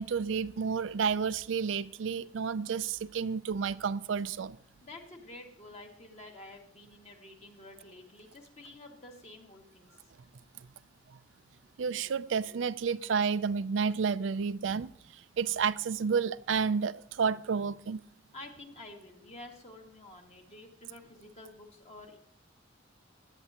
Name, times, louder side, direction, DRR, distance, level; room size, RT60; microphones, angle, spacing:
voice 1, 0.0-4.6 11.8-14.9 15.4-18.0, right 6 dB, 70° right, 0.4 m, -30 dB
voice 2, 4.8-9.9 18.3-22.2, left 2 dB, 35° left, 2.1 m, -50 dB
16.5 x 11.5 x 2.9 m
head